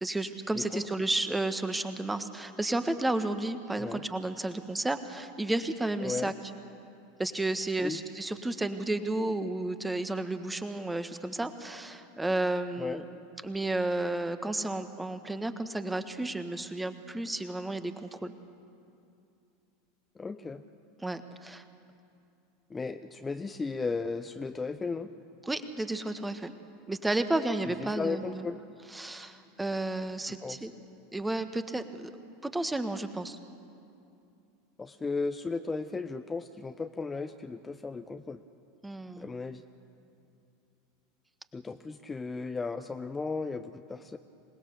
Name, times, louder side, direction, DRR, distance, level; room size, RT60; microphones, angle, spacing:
voice 1, 0.0-6.3 7.2-13.0 13.4-18.3 21.0-21.6 25.4-26.5 26.9-28.5 28.9-30.7 31.1-32.1 32.4-33.4 38.8-39.3, right 2 dB, 10° right, 9 dB, 1.5 m, -32 dB
voice 2, 6.0-6.3 7.8-8.0 12.8-13.0 20.2-20.6 22.7-25.1 27.8-28.6 30.3-30.6 34.8-38.4 39.2-39.6 41.5-44.2, left 4 dB, 15° left, 9 dB, 0.8 m, -35 dB
26.0 x 19.5 x 7.0 m, 2.6 s
figure-of-eight pair, 85°, 0 cm